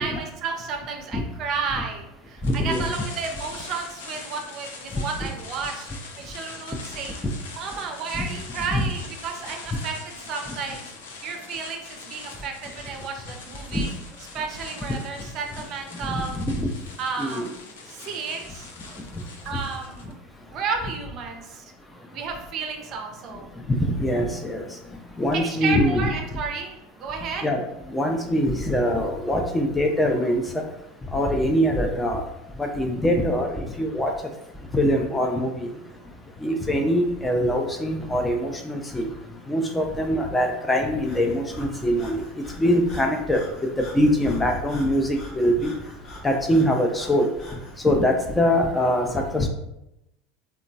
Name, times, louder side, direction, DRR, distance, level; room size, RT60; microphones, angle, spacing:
voice 1, 0.0-5.9 6.2-7.1 7.5-10.8 11.2-13.9 14.3-16.4 17.0-18.7 19.4-20.2 20.5-21.6 22.1-23.5 25.3-27.5, right 5 dB, 50° right, 4 dB, 0.5 m, -32 dB
sound 1, 2.4-20.1, left 4 dB, 80° left, 0.4 m, -42 dB
voice 2, 2.4-2.8 8.1-8.3 8.7-8.8 13.7-13.8 16.0-16.7 17.2-17.5 23.7-24.6 25.2-26.1 27.4-27.6 27.9-30.6 31.1-32.3 32.6-34.1 34.7-35.7 36.4-39.1 39.5-42.2 42.6-43.5 43.8-45.7 46.2-47.3 47.8-49.5, equal, 10° left, 2 dB, 0.4 m, -23 dB
Breathing, 41.0-47.8, left 1 dB, 40° left, 0.9 m, -43 dB
2.8 x 2.2 x 2.6 m, 0.87 s
hypercardioid pair, 90°, 0 cm